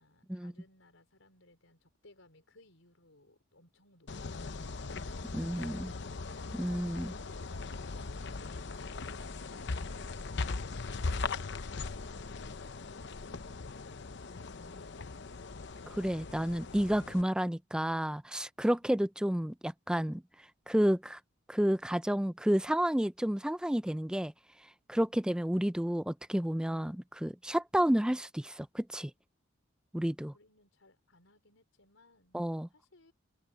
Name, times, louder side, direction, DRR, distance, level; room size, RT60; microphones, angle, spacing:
voice 1, 0.0-7.2 7.5-10.8 11.7-13.9 14.2-15.0 30.3-33.1, left 2 dB, 85° left, 4.8 m, -64 dB
sound 1, 4.1-17.2, left 3 dB, 60° left, 0.8 m, -39 dB
voice 2, 5.3-5.9 6.5-7.1 15.9-20.2 20.7-21.2 21.5-24.3 24.9-29.1 29.9-30.3 32.3-32.7, equal, 5° right, 0.4 m, -30 dB
head